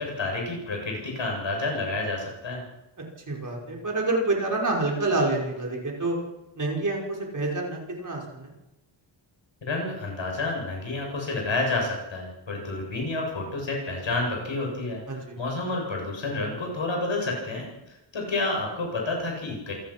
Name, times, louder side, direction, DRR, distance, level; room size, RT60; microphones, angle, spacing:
voice 1, 0.0-2.6 9.7-17.7 18.1-19.7, left 2 dB, 65° left, 0 dB, 7.9 m, -29 dB
voice 2, 3.3-6.2 6.6-8.5 15.1-15.4, right 2 dB, 40° right, -1 dB, 5.5 m, -27 dB
27.5 x 18.0 x 6.0 m, 0.94 s
wide cardioid pair, 175°, 49 cm